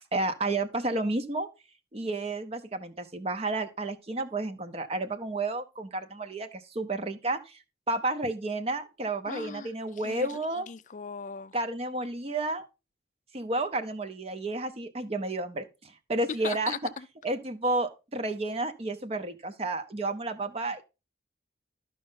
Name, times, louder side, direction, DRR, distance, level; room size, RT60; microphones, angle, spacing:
voice 1, 0.1-1.5 1.9-7.6 7.9-10.7 11.5-12.7 13.3-15.7 16.1-16.7 17.2-20.8, right 2 dB, 30° right, 0.6 m, -31 dB
voice 2, 9.3-11.5 16.4-17.1, left 6 dB, 40° left, 0.4 m, -39 dB
12.0 x 5.2 x 3.8 m
head